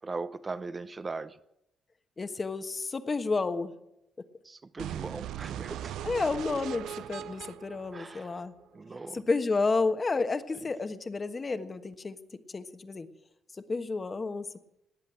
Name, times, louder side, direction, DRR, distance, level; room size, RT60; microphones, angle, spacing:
voice 1, 0.0-1.4 4.4-6.0 7.9-8.4 8.7-9.2, right 3 dB, 30° right, 12 dB, 0.8 m, -39 dB
voice 2, 2.2-3.8 6.0-8.5 9.1-12.2 12.5-13.1 13.5-14.6, left 3 dB, 30° left, 9 dB, 1.3 m, -31 dB
sound 1, 4.8-8.8, right 11 dB, 80° right, 0.6 m, -39 dB
19.5 x 8.1 x 9.1 m, 0.84 s
cardioid pair, 90°, 0 cm